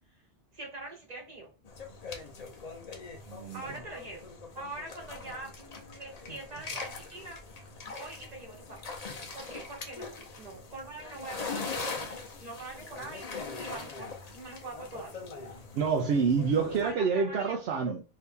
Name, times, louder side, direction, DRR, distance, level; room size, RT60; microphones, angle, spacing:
voice 1, 0.5-1.5 3.5-4.3 4.5-8.8 9.3-14.1 14.3-15.2 16.8-17.6, right 2 dB, 40° right, 1.3 m, -44 dB
sound 1, 1.7-16.9, left 4 dB, 45° left, 0.6 m, -42 dB
voice 2, 3.3-3.6 9.5-9.6 15.7-18.0, right 5 dB, 70° right, 0.8 m, -27 dB
2.9 x 2.7 x 3.4 m
omnidirectional pair, 1.1 m